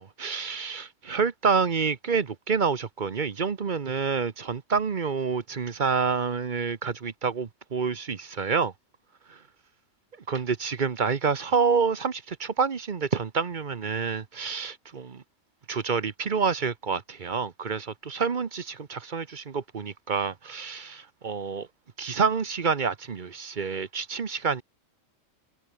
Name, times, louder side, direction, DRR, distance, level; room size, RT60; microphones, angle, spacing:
voice 1, 0.0-8.7 10.3-15.2 15.7-21.7 22.0-24.6, right 5 dB, 40° right, 1.0 m, -28 dB
omnidirectional pair, 1.3 m